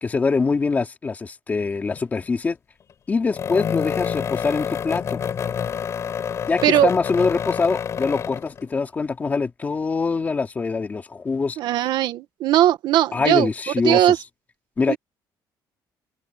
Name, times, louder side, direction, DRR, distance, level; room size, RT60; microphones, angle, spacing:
voice 1, 0.0-2.6 3.1-5.2 6.5-11.6 13.1-14.1 14.8-15.0, left 4 dB, 20° left, 2.5 m, -24 dB
sound 1, 1.9-2.2 3.3-8.6, left 8 dB, 35° left, 6.2 m, -28 dB
voice 2, 11.6-13.5 13.8-14.2 14.9-15.0, right 12 dB, 70° right, 1.6 m, -19 dB
open air
cardioid pair, 165°, 8 cm